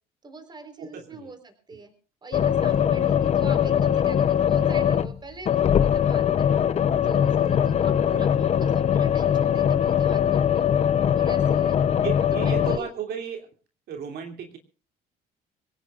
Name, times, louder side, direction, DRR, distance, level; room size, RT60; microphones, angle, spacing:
voice 1, 0.2-1.9 2.2-6.7 7.0-10.7 11.1-11.8 12.2-12.9, right 3 dB, 25° right, 6 dB, 4.1 m, -43 dB
voice 2, 0.8-1.3 3.2-3.3 12.0-13.5 13.9-14.6, right 7 dB, 70° right, 3 dB, 2.8 m, -34 dB
sound 1, 2.3-5.2 5.4-12.8, left 9 dB, 40° left, 0.7 m, -21 dB
25.0 x 17.0 x 2.5 m, 0.36 s
cardioid pair, 110°, 17 cm